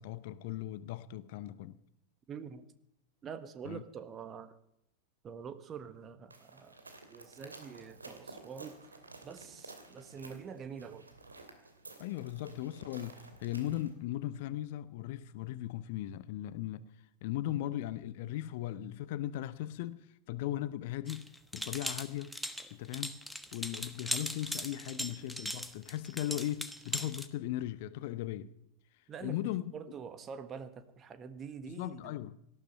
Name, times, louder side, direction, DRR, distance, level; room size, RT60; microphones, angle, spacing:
voice 1, 0.0-1.8 3.6-3.8 12.0-16.8 17.2-21.2 21.5-22.4 22.7-23.2 23.5-28.5 29.2-29.6 31.6-32.4, left 13 dB, 50° left, 0.8 m, -38 dB
voice 2, 2.3-2.7 3.2-4.5 5.2-6.8 7.1-11.1 24.9-25.3 29.1-32.2, right 6 dB, 25° right, 1.4 m, -46 dB
sound 1, 6.3-13.9, right 3 dB, 80° right, 2.6 m, -53 dB
sound 2, 21.1-27.3, left 1 dB, ahead, 1.2 m, -39 dB
18.5 x 13.0 x 5.6 m
figure-of-eight pair, 90°, 0 cm